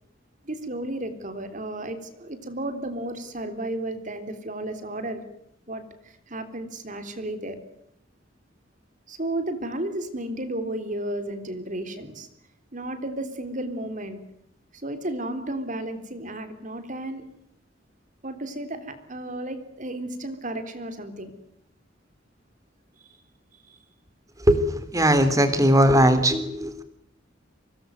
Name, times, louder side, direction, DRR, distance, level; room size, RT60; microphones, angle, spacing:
voice 1, 0.4-5.2 5.7-7.6 9.1-12.3 12.7-14.2 14.7-17.3 18.2-21.3 23.0-23.1 23.5-23.8, right 1 dB, 40° right, 9 dB, 3.6 m, -33 dB
voice 2, 24.5-26.8, equal, 15° right, 11 dB, 3.5 m, -19 dB
25.5 x 20.0 x 9.4 m, 0.75 s
head